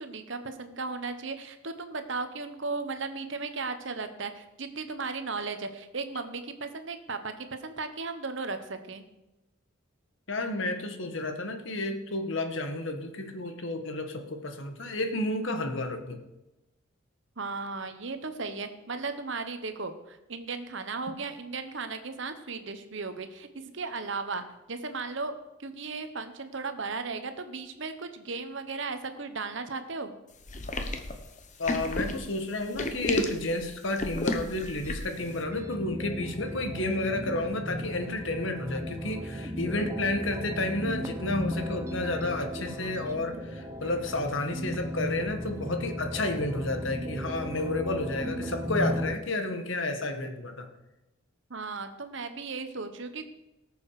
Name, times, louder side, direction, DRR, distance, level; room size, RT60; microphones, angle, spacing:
voice 1, 0.0-9.0 17.4-23.5 23.7-25.3 25.6-30.1 51.5-53.3, right 4 dB, 60° right, 9 dB, 1.1 m, -36 dB
voice 2, 10.3-16.2 31.6-50.7, left 2 dB, 65° left, 6 dB, 1.5 m, -31 dB
sound 1, 30.5-35.2, left 1 dB, 35° left, 1.0 m, -32 dB
sound 2, 34.5-49.1, equal, 15° right, 0.7 m, -36 dB
18.5 x 7.0 x 4.9 m, 0.97 s
head